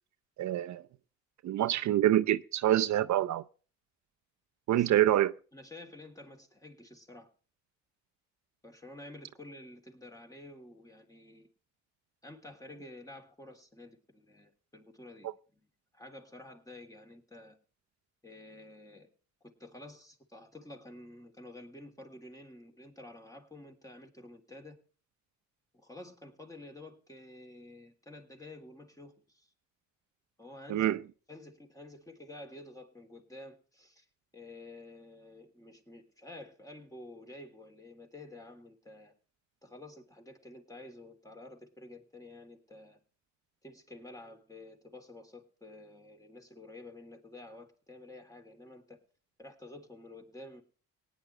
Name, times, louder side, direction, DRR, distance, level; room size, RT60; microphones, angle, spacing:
voice 1, 0.4-0.8 1.4-3.4 4.7-5.3 30.7-31.0, right 13 dB, 65° right, 0.7 m, -26 dB
voice 2, 5.5-7.3 8.6-11.5 12.2-17.6 18.2-19.1 19.4-24.8 25.7-29.5 30.4-30.9 31.3-34.0 34.3-39.1 39.6-43.0 43.6-49.0 49.4-50.6, left 2 dB, 10° left, 3.2 m, -50 dB
18.5 x 10.0 x 3.3 m
cardioid pair, 90°, 30 cm